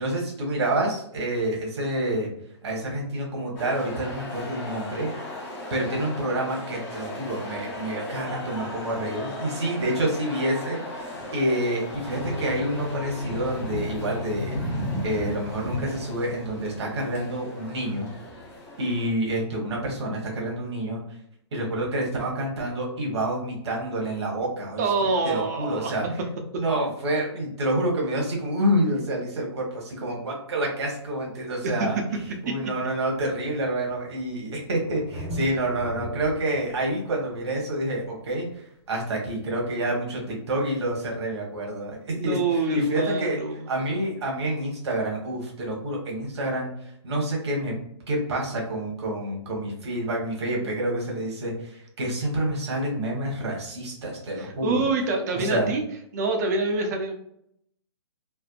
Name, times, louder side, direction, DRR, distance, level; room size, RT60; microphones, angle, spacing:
voice 1, 0.0-2.3 2.6-5.1 5.7-11.0 11.3-14.5 15.0-18.1 18.8-21.0 21.5-24.8 25.2-26.0 26.5-32.0 32.4-38.5 38.9-43.4 43.7-46.7 47.0-47.7 48.1-54.8 55.3-55.7, right 1 dB, 65° right, -2 dB, 1.2 m, -28 dB
sound 1, 3.6-19.1, left 1 dB, 15° left, 0.6 m, -36 dB
sound 2, 12.1-17.9, left 3 dB, 70° left, 0.4 m, -38 dB
voice 2, 24.8-25.9 26.5-26.6 31.6-31.9 32.5-32.6 42.2-43.6 54.4-55.8 56.1-57.1, right 3 dB, 35° right, 4 dB, 0.6 m, -26 dB
Thunder, 30.8-30.9 31.8-31.9 32.2-39.5 41.2-41.3, equal, 45° left, 1.4 m, -41 dB
3.4 x 2.0 x 2.4 m, 0.72 s
hypercardioid pair, 160°, 15 cm